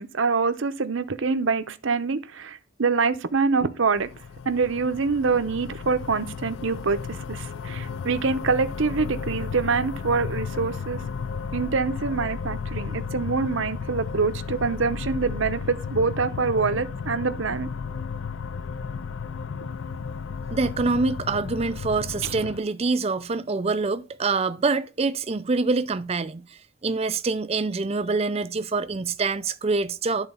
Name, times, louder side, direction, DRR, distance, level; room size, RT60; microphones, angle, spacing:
voice 1, 0.0-4.1 4.5-11.0 11.5-17.7, right 4 dB, 60° right, 0.7 m, -25 dB
sound 1, 4.0-22.6, left 5 dB, 60° left, 0.4 m, -34 dB
voice 2, 20.5-30.3, right 3 dB, 25° right, 0.4 m, -25 dB
11.0 x 3.9 x 5.5 m
head